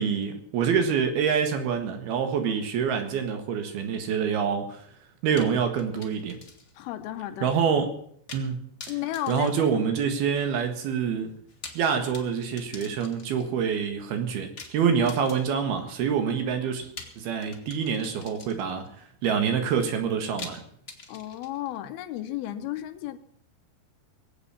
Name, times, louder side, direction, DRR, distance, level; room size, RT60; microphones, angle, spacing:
voice 1, 0.0-4.9 5.2-6.4 7.4-7.9 8.3-8.7 9.3-11.3 11.8-16.9 17.2-20.6, right 7 dB, 70° right, 3.5 m, -26 dB
sound 1, 5.4-6.9 7.2-7.3 8.3-8.5 8.8-10.3 11.4-13.5 14.6-15.7 17.0-18.9 20.4-21.8, left 4 dB, 60° left, 0.8 m, -45 dB
voice 2, 6.8-7.5 8.9-9.5 21.1-23.2, left 13 dB, 75° left, 2.6 m, -33 dB
22.5 x 8.3 x 5.7 m
omnidirectional pair, 4.6 m